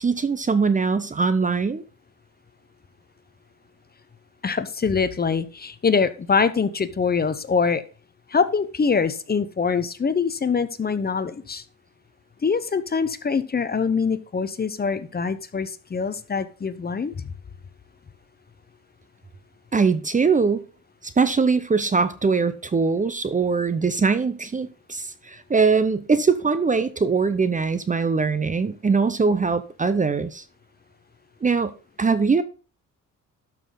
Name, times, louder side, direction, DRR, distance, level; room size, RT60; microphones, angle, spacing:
voice 1, 0.0-1.8 19.7-20.6 21.0-30.4 31.4-32.4, right 4 dB, 25° right, 0.7 m, -22 dB
voice 2, 4.4-7.8 8.3-11.6 12.4-17.2, left 5 dB, 30° left, 0.9 m, -24 dB
12.5 x 6.1 x 3.9 m
cardioid pair, 120°, 32 cm